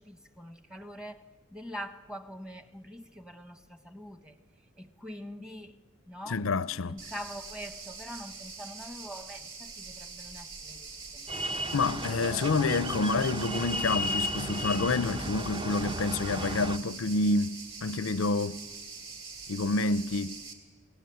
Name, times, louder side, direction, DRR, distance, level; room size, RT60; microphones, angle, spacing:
voice 1, 0.0-4.4 4.8-5.8 6.1-6.4 6.9-11.5, equal, 5° right, 1.2 m, -44 dB
voice 2, 6.3-7.0 11.7-18.6 19.5-20.4, left 3 dB, 75° left, 0.6 m, -28 dB
sound 1, 7.0-20.5, right 4 dB, 75° right, 3.4 m, -44 dB
sound 2, 11.3-16.8, equal, 25° right, 1.0 m, -34 dB
28.5 x 19.0 x 8.0 m
head